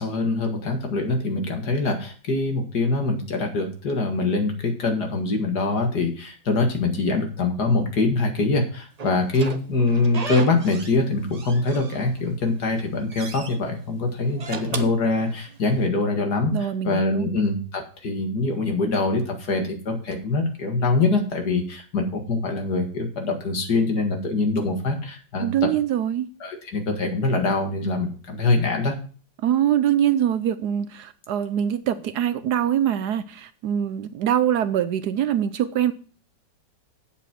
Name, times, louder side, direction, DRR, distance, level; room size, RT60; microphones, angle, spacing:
voice 1, 0.0-16.6 16.8-25.7 26.4-29.0, left 3 dB, 60° left, 2.3 m, -24 dB
Slam / Squeak, 9.0-11.0 11.3-12.3 12.7-13.6 14.2-15.8, right 4 dB, 45° right, 0.5 m, -36 dB
voice 2, 16.5-17.3 25.4-26.3 29.4-35.9, right 10 dB, 70° right, 1.1 m, -23 dB
8.3 x 7.5 x 6.1 m
omnidirectional pair, 2.0 m